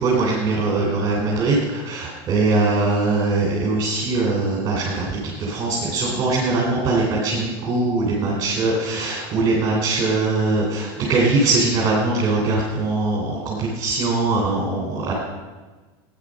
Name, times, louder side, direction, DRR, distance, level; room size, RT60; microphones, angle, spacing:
voice 1, 0.0-5.1 5.4-15.1, right 3 dB, 30° right, -3 dB, 3.3 m, -21 dB
15.5 x 9.7 x 6.4 m, 1.3 s
supercardioid pair, 165°, 13 cm